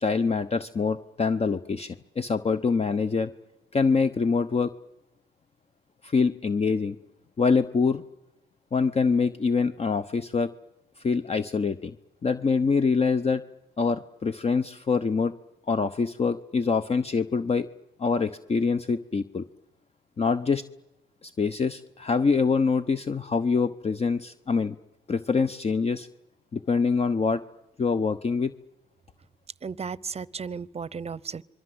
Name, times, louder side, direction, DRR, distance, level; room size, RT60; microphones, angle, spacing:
voice 1, 0.0-3.3 3.7-4.7 6.0-7.0 7.4-8.0 8.7-10.5 11.0-11.9 12.2-13.4 13.8-15.3 15.7-17.7 18.0-19.4 20.2-20.6 21.2-24.7 25.1-26.1 26.5-27.4 27.8-28.5, left 5 dB, 30° left, 11 dB, 0.9 m, -25 dB
voice 2, 29.6-31.4, right 5 dB, 30° right, 22 dB, 0.8 m, -34 dB
26.5 x 22.5 x 7.9 m, 0.93 s
cardioid pair, 90°, 20 cm